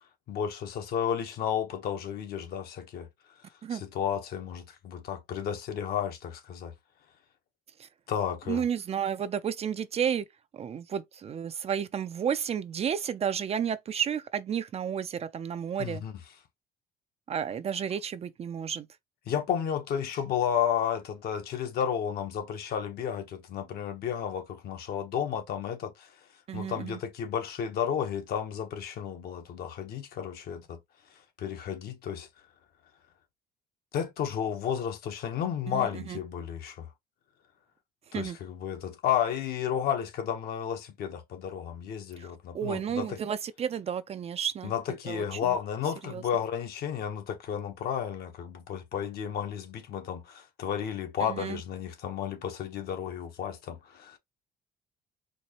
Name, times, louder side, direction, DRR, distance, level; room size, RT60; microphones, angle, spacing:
voice 1, 0.3-3.1 3.7-6.7 8.1-8.7 15.8-16.2 19.3-30.8 31.1-32.3 33.9-36.9 38.1-43.2 44.6-54.2, left 8 dB, 65° left, 1.1 m, -32 dB
voice 2, 8.5-10.2 10.6-16.0 17.3-18.9 26.5-27.0 35.7-36.2 38.1-38.4 42.5-44.7 45.1-45.2 46.1-46.2 51.3-51.6, right 8 dB, 40° right, 0.4 m, -32 dB
4.5 x 2.6 x 2.9 m
cardioid pair, 110°, 17 cm